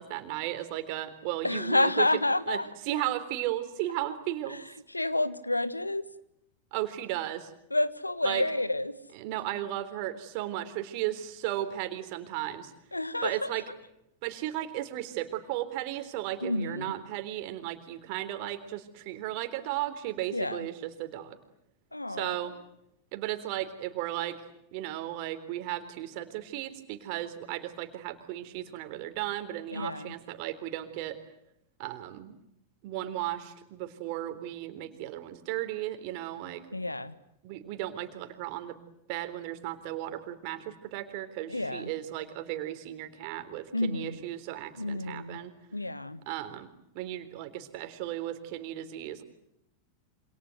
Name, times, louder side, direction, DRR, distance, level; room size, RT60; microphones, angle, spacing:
voice 1, 0.0-2.1 2.5-2.6 2.9-4.6 6.7-7.5 8.2-8.4 9.1-12.7 13.2-13.6 14.2-21.4 22.1-22.5 23.1-24.4 24.7-31.2 31.8-32.4 32.8-36.6 37.4-38.8 39.1-45.5 46.3-46.7 46.9-49.2, right 14 dB, 45° right, 9 dB, 3.7 m, -35 dB
voice 2, 1.4-2.7 4.5-4.6 4.9-6.0 7.7-9.0 12.9-13.6 16.4-16.9 20.3-20.7 21.9-22.6 29.7-30.1 36.7-37.1 41.5-41.9 43.7-44.2 44.8-45.4 45.7-46.2, left 2 dB, 85° left, 15 dB, 1.5 m, -29 dB
28.0 x 27.0 x 8.0 m, 0.80 s
figure-of-eight pair, 90°, 0 cm